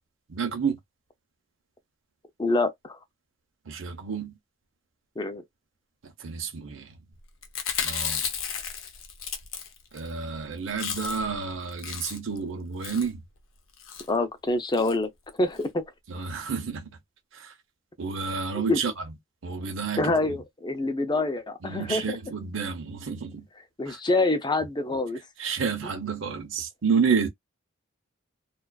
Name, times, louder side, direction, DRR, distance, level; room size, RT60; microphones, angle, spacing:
voice 1, 0.3-0.8 3.7-4.4 6.0-7.0 7.8-8.2 9.9-13.2 16.1-17.0 17.3-17.5 18.0-19.1 19.4-20.4 21.6-23.5 23.9-24.0 25.4-27.3, right 5 dB, 70° right, 0.6 m, -30 dB
voice 2, 2.4-3.0 5.2-5.4 14.1-15.1 15.4-15.8 18.5-18.8 20.0-22.2 23.8-25.2, left 2 dB, 20° left, 0.5 m, -26 dB
Chewing mastication, 7.4-10.1 10.4-10.5 10.7-11.4 11.7-12.4 12.8-13.1 13.8-14.1 14.7-15.0 15.3-15.4 15.6-15.7, left 7 dB, 90° left, 0.7 m, -33 dB
2.4 x 2.3 x 2.2 m
head